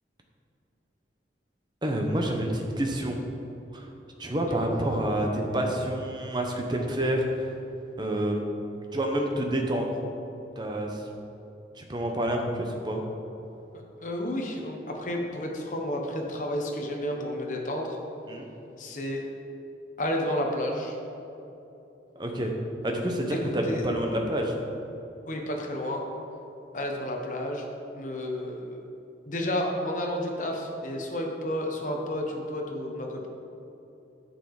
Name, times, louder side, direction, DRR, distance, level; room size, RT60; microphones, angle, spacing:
voice 1, 1.8-3.2 3.7-3.9 4.2-7.2 8.0-8.4 8.9-9.9 10.6-11.0 11.8-13.0 18.3-18.5 22.2-22.5 22.8-24.5, right 1 dB, 25° right, 2 dB, 1.0 m, -28 dB
voice 2, 13.7-18.0 18.8-19.2 20.0-21.0 23.3-23.8 25.3-26.0 26.7-27.7 27.9-28.8 29.3-33.3, left 1 dB, 45° left, 0 dB, 1.2 m, -31 dB
10.5 x 6.9 x 4.9 m, 2.9 s
head